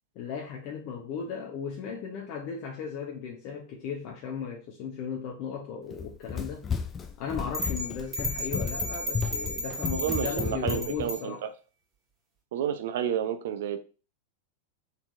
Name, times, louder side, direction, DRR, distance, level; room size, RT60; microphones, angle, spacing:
voice 1, 0.1-6.7 7.2-11.4, left 6 dB, 45° left, 0.8 m, -36 dB
Run, 5.9-11.1, left 6 dB, 20° left, 0.5 m, -33 dB
sound 1, 7.5-11.2, equal, 20° right, 1.8 m, -34 dB
voice 2, 9.9-11.3 12.5-13.8, right 9 dB, 55° right, 0.7 m, -30 dB
4.3 x 4.1 x 2.5 m
figure-of-eight pair, 90°, 0 cm